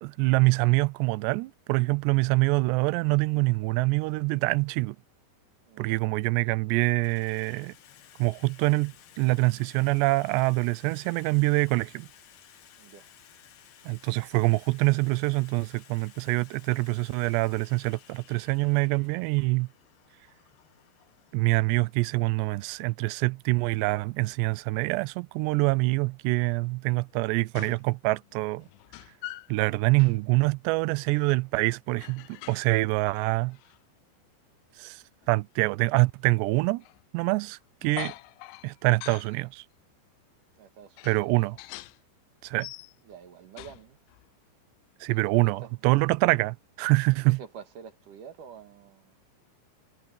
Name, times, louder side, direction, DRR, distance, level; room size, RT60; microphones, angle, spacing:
voice 1, 0.0-5.0 5.8-7.7 8.2-12.1 13.9-19.7 21.3-28.7 29.5-33.6 34.8-36.8 37.1-38.1 38.6-39.6 41.0-41.6 42.4-42.7 45.0-47.4, right 23 dB, 80° right, 2.7 m, -25 dB
voice 2, 5.7-6.0 12.8-13.1 40.6-41.4 43.0-44.0 45.1-45.7 47.2-49.2, right 7 dB, 55° right, 2.7 m, -47 dB
Water tap faucet / Sink (filling or washing), 6.7-24.3, left 10 dB, 60° left, 2.8 m, -56 dB
sound 1, 27.1-27.2 27.6-27.9 28.2-29.6 30.0-30.2 32.0-32.8 33.2-33.8 35.2-35.3 36.8-37.1 37.8-39.5 40.1-40.2 41.0-42.0 42.4-43.2 43.6-44.3, left 17 dB, 85° left, 3.1 m, -44 dB
omnidirectional pair, 5.2 m